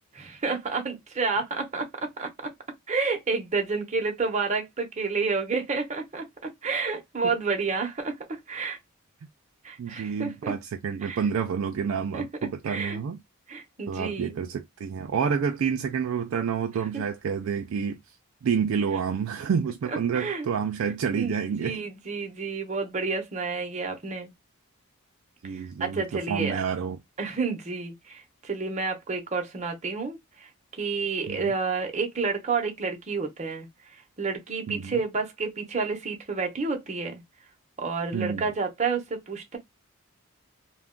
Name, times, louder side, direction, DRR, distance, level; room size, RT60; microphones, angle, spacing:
voice 1, 0.1-2.5 2.9-6.2 6.6-8.8 9.6-10.5 11.0-11.2 12.1-12.2 12.7-13.0 13.5-14.4 19.9-20.5 20.8-21.3 21.6-24.3 25.5-26.6 27.2-30.5 30.8-33.7 34.2-37.2 37.8-39.6, right 4 dB, 30° right, 0.7 m, -30 dB
voice 2, 9.8-13.2 13.9-18.0 18.4-21.8 25.4-27.0 31.3-31.5 34.7-35.0 38.1-38.5, right 6 dB, 65° right, 0.3 m, -29 dB
2.3 x 2.1 x 3.6 m
head